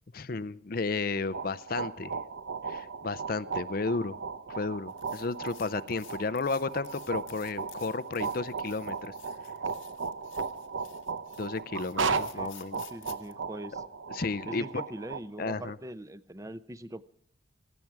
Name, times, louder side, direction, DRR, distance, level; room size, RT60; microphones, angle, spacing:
voice 1, 0.1-2.1 2.7-4.2 4.5-9.1 11.4-12.8 14.1-14.7 15.4-15.8, left 3 dB, 45° left, 15 dB, 0.5 m, -33 dB
sound 1, 1.2-15.2, right 5 dB, 80° right, 0.8 m, -36 dB
sound 2, 4.9-13.3, left 13 dB, 85° left, 1.5 m, -54 dB
voice 2, 12.9-13.8 14.5-17.0, right 1 dB, 15° right, 14 dB, 0.6 m, -42 dB
18.0 x 15.5 x 4.7 m, 0.68 s
head